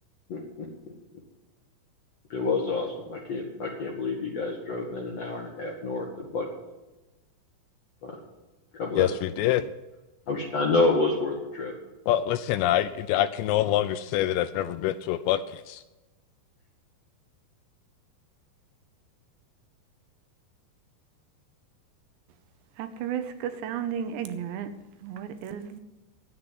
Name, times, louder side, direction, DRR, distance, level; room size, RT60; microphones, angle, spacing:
voice 1, 0.3-0.7 2.3-6.5 8.0-8.2 8.7-9.1 10.3-11.7, left 3 dB, 60° left, 0 dB, 1.8 m, -28 dB
voice 2, 9.0-9.7 12.1-15.8, left 12 dB, 80° left, 12 dB, 2.6 m, -25 dB
voice 3, 22.8-24.7 25.0-25.8, right 8 dB, 75° right, 10 dB, 3.0 m, -33 dB
10.0 x 9.4 x 9.7 m, 1.1 s
omnidirectional pair, 5.3 m